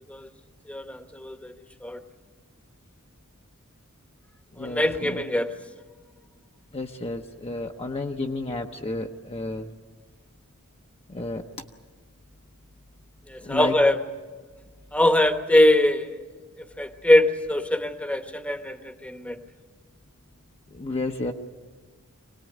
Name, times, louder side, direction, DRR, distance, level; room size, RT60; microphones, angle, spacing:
voice 1, 0.7-1.5 1.8-2.0 4.6-5.5 13.3-14.0 14.9-16.1 16.8-19.4, left 1 dB, 5° left, 7 dB, 1.1 m, -22 dB
voice 2, 4.5-5.2 6.7-9.7 11.1-11.4 13.4-13.8 20.7-21.3, left 2 dB, 25° left, 2 dB, 0.9 m, -31 dB
25.0 x 18.5 x 9.3 m, 1.4 s
head